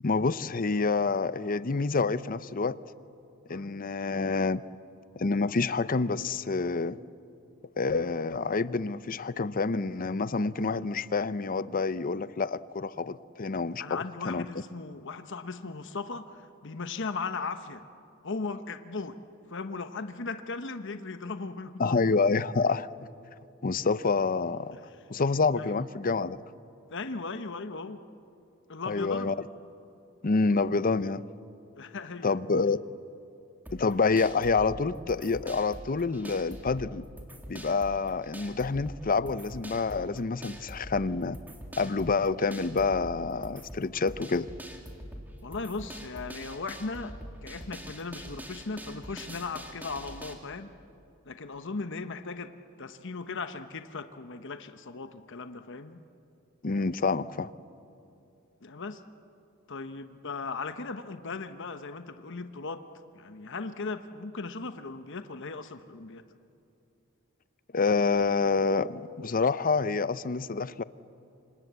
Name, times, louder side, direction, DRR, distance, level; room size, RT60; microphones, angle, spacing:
voice 1, 0.0-2.8 3.5-4.6 5.2-7.0 7.8-14.4 21.8-22.9 23.6-24.8 25.1-26.4 28.9-29.3 30.2-31.2 32.2-32.8 33.7-37.1 37.5-41.4 41.8-44.5 56.6-57.5 67.7-70.8, left 4 dB, 45° left, 16 dB, 0.7 m, -27 dB
voice 2, 13.8-17.8 18.2-19.2 19.5-22.0 25.6-25.7 26.9-28.0 28.7-29.4 31.8-32.3 45.4-47.1 47.4-50.7 51.3-52.5 52.8-56.0 58.6-59.0 59.7-62.8 63.1-66.3, left 4 dB, 60° left, 9 dB, 1.1 m, -37 dB
sound 1, 33.6-50.3, equal, 10° right, 2.6 m, -44 dB
27.5 x 26.0 x 8.2 m, 2.7 s
head